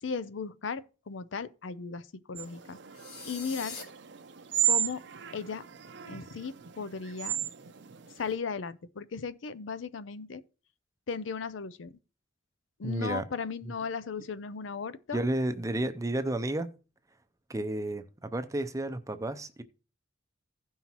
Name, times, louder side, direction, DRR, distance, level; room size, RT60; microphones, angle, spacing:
voice 1, 0.0-2.8 3.2-3.8 4.6-5.0 5.3-5.6 6.1-7.4 8.2-10.4 11.1-11.9 12.8-15.2, left 5 dB, 75° left, 0.5 m, -36 dB
sound 1, 2.4-8.3, right 10 dB, 60° right, 0.6 m, -34 dB
sound 2, 2.9-3.8, left 4 dB, 55° left, 2.5 m, -42 dB
voice 2, 12.8-13.2 15.1-16.7 17.5-19.6, right 1 dB, 15° right, 0.5 m, -31 dB
16.0 x 5.5 x 3.0 m
head